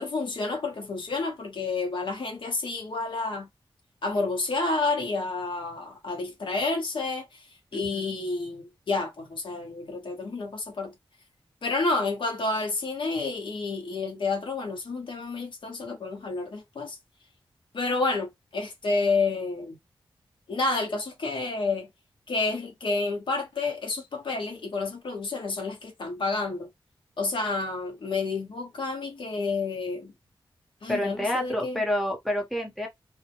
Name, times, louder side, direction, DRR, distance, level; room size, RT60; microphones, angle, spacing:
voice 1, 0.0-3.5 4.0-7.5 7.7-10.9 11.6-17.0 17.7-19.8 20.5-21.9 22.3-26.7 27.2-30.1 30.8-31.8, left 3 dB, 70° left, 0.9 m, -29 dB
voice 2, 7.7-8.1 30.9-32.9, left 1 dB, ahead, 0.8 m, -29 dB
2.2 x 2.1 x 2.8 m
cardioid pair, 70°, 9 cm